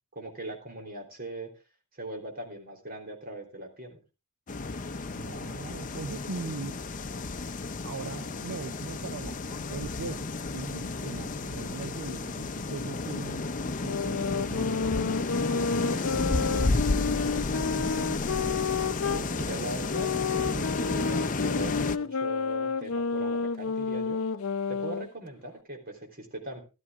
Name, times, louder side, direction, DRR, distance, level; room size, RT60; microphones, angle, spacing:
voice 1, 0.1-1.5 1.9-4.0 19.1-24.2 24.7-26.6, right 2 dB, 45° right, 2 dB, 3.4 m, -40 dB
sound 1, 4.5-22.0, left 3 dB, 40° left, 0.6 m, -32 dB
voice 2, 5.1-6.8 7.8-18.3, right 4 dB, 75° right, 12 dB, 0.6 m, -40 dB
sound 2, 13.8-19.3 19.9-25.1, left 5 dB, 80° left, 0.5 m, -30 dB
14.5 x 12.0 x 3.6 m, 0.30 s
head